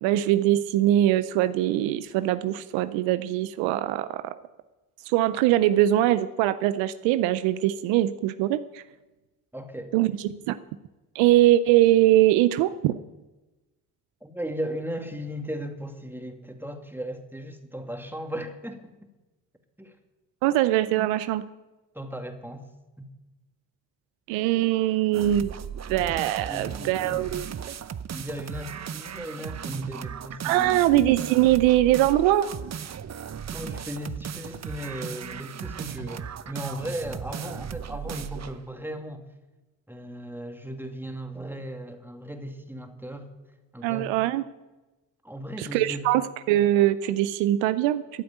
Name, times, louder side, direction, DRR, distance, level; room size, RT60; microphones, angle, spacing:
voice 1, 0.0-4.3 5.1-8.8 9.9-10.6 11.1-12.9 20.4-21.4 24.3-25.5 25.9-27.5 30.4-32.5 43.8-44.4 45.6-48.2, right 14 dB, 80° right, 13 dB, 0.6 m, -22 dB
voice 2, 9.5-9.9 14.2-18.9 19.8-19.9 21.9-22.7 23.0-23.1 26.5-27.2 28.1-30.9 33.5-39.3 39.9-43.3 43.7-44.1 45.2-46.0, equal, 5° right, 4 dB, 2.4 m, -36 dB
sound 1, 25.1-38.6, right 8 dB, 35° right, 0.8 m, -37 dB
13.5 x 7.8 x 9.2 m, 1.1 s
hypercardioid pair, 45°, 44 cm